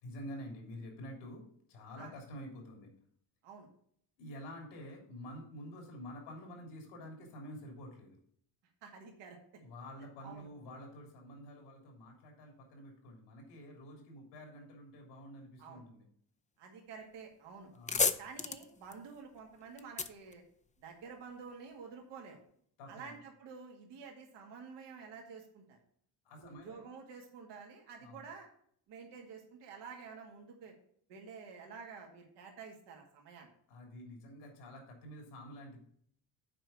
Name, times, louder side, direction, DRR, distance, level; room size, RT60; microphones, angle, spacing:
voice 1, 0.0-1.4 1.7-2.9 4.2-8.2 9.6-16.0 17.7-18.1 22.8-23.1 26.2-26.8 28.0-28.2 33.7-35.8, equal, 85° left, 1 dB, 3.3 m, -49 dB
voice 2, 8.8-9.4 10.2-10.5 15.6-15.8 16.6-17.7 18.2-20.4 20.8-22.4 22.9-25.8 26.4-28.5 28.9-30.7 31.1-33.5, right 5 dB, 75° right, 1 dB, 2.1 m, -50 dB
sound 1, 17.1-17.3 17.6-21.2, left 4 dB, 15° left, 0.6 m, -35 dB
7.7 x 4.7 x 6.9 m, 0.64 s
supercardioid pair, 80°, 43 cm